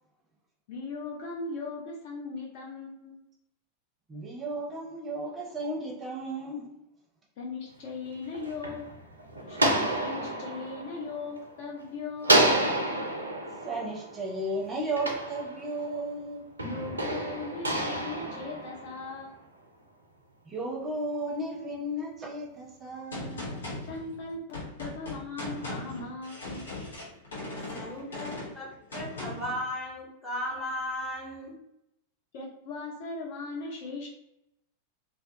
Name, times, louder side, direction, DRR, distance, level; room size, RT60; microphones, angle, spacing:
voice 1, 0.7-3.2 7.4-8.8 9.4-12.5 16.6-19.3 23.9-26.7 32.3-34.1, left 3 dB, 50° left, 0.5 m, -38 dB
voice 2, 4.1-6.7 13.6-16.5 20.5-23.6, right 1 dB, 20° right, 0.6 m, -34 dB
sound 1, 8.1-11.8 12.2-16.0 16.6-19.2, right 1 dB, 80° right, 0.4 m, -29 dB
Gunshot gunfire, 23.1-29.6, left 2 dB, 65° left, 1.0 m, -39 dB
voice 3, 27.7-31.5, left 1 dB, 20° left, 1.1 m, -36 dB
2.2 x 2.1 x 2.7 m
figure-of-eight pair, 90°, 0 cm